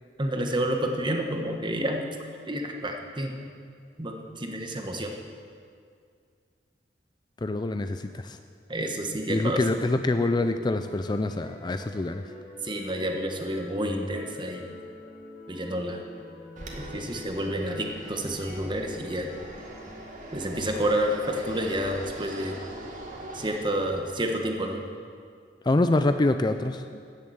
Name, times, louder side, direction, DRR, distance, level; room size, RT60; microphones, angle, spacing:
voice 1, 0.2-2.1 2.5-3.3 4.0-5.1 8.7-9.6 12.6-14.6 15.5-16.0 16.7-19.3 20.3-22.6 23.3-24.8, right 1 dB, 30° right, 3 dB, 1.3 m, -29 dB
voice 2, 7.4-8.4 9.3-12.2 25.7-27.0, left 2 dB, 25° left, 8 dB, 0.4 m, -25 dB
sound 1, 9.5-22.8, equal, 80° left, 3.3 m, -45 dB
Fixed-wing aircraft airplane, 16.6-24.3, right 1 dB, 45° right, 1.8 m, -42 dB
14.0 x 7.1 x 8.6 m, 2.2 s
head